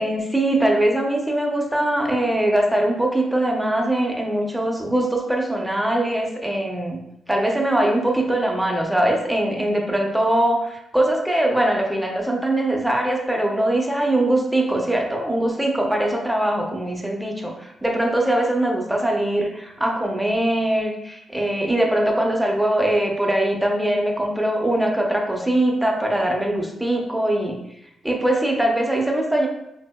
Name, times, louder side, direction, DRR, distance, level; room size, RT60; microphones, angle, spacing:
voice 1, 0.0-7.0 7.3-27.6 28.0-29.5, right 1 dB, 5° right, 0 dB, 0.6 m, -22 dB
3.6 x 2.7 x 2.2 m, 0.83 s
cardioid pair, 80°, 0 cm